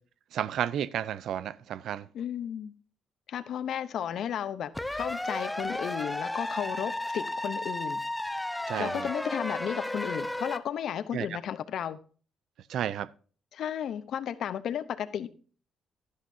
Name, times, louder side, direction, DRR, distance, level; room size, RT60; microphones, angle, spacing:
voice 1, 0.3-2.1 8.7-9.1 11.1-11.4 12.7-13.1, right 10 dB, 75° right, 0.5 m, -32 dB
voice 2, 2.1-2.7 3.3-8.0 8.8-12.0 13.5-15.3, left 9 dB, 70° left, 0.8 m, -34 dB
sound 1, 4.7-10.6, left 1 dB, 10° left, 0.6 m, -33 dB
11.5 x 11.5 x 2.7 m
cardioid pair, 90°, 0 cm